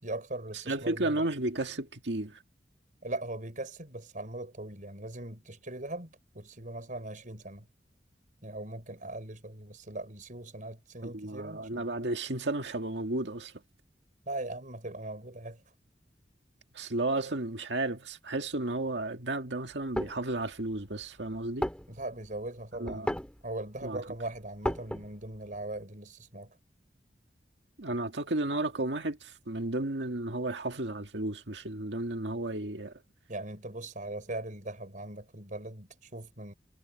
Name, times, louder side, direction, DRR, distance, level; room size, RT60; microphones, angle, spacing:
voice 1, 0.0-1.2 3.0-6.1 6.3-7.7 8.4-11.9 14.3-15.6 21.9-23.2 23.4-26.6 33.3-36.5, right 2 dB, 50° right, 5.5 m, -40 dB
voice 2, 0.7-2.4 11.0-13.5 16.7-21.7 22.8-23.1 23.8-24.0 27.8-32.9, right 2 dB, 80° right, 2.0 m, -33 dB
sound 1, 19.7-20.2 20.9-21.0 21.4-21.5 21.6-22.3 22.8-23.4 23.8-23.9 24.1-25.3, equal, 5° left, 2.6 m, -33 dB
head